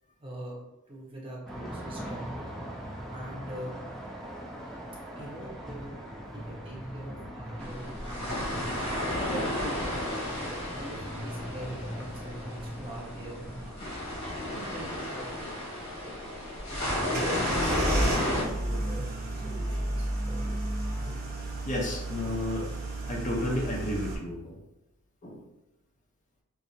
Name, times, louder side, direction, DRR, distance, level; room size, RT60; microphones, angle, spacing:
voice 1, 0.2-0.6 0.9-2.5 3.1-3.7 5.1-8.9 9.3-9.9 10.3-13.8 14.4-16.2 16.7-19.1 19.4-20.8, right 1 dB, 25° right, -3 dB, 0.8 m, -43 dB
sound 1, 1.5-13.7, equal, ahead, 0.5 m, -41 dB
sound 2, 7.6-18.4, left 1 dB, 80° left, 1.5 m, -33 dB
sound 3, 17.1-24.1, right 1 dB, 45° right, 1.0 m, -32 dB
voice 2, 21.7-22.7 23.1-24.6 25.2-25.4, left 1 dB, 35° left, -2 dB, 0.7 m, -32 dB
5.7 x 2.0 x 2.7 m, 0.94 s
head